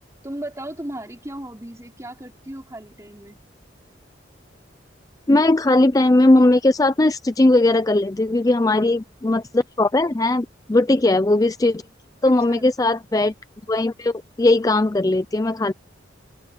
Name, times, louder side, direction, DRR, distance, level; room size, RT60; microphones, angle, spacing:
voice 1, 0.2-3.4 12.2-12.7, right 1 dB, 15° right, 3.7 m, -36 dB
voice 2, 5.3-11.8 12.2-13.3 13.7-15.7, left 2 dB, 20° left, 0.4 m, -18 dB
head